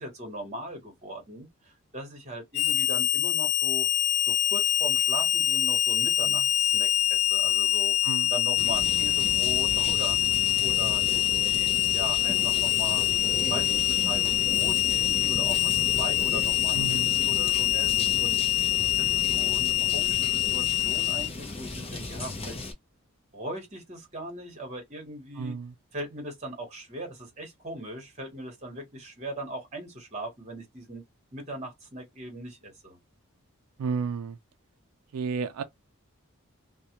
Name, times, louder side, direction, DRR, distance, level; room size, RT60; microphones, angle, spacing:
voice 1, 0.0-3.9 4.3-7.9 8.3-13.0 13.5-18.4 19.0-22.6 23.3-25.5 25.9-31.0 31.3-33.0, right 1 dB, 30° right, 1.0 m, -39 dB
Harmonica, 2.5-21.3, left 13 dB, 85° left, 0.4 m, -25 dB
sound 1, 8.6-22.7, left 2 dB, 25° left, 0.5 m, -36 dB
voice 2, 16.7-17.2 25.4-25.7 33.8-34.4 35.1-35.6, right 5 dB, 85° right, 0.3 m, -32 dB
2.3 x 2.1 x 2.8 m
head